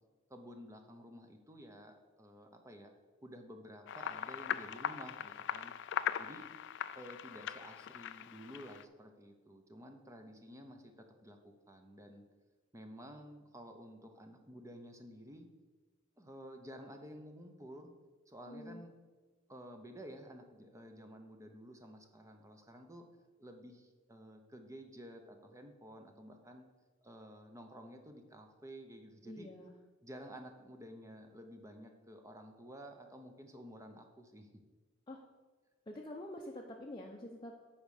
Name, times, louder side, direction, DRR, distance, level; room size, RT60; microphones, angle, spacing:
voice 1, 0.3-2.9 3.2-5.7 6.2-6.4 6.9-12.2 12.7-15.5 16.2-17.9 18.3-18.9 19.5-23.1 23.4-26.6 27.0-29.5 30.0-34.5, equal, 15° right, 5 dB, 0.8 m, -52 dB
sound 1, 3.9-8.8, left 9 dB, 60° left, 0.4 m, -40 dB
voice 2, 18.5-18.8 29.3-29.7 35.1-35.2 35.9-37.6, left 1 dB, 25° left, -1 dB, 0.7 m, -47 dB
8.8 x 5.1 x 6.5 m, 1.3 s
head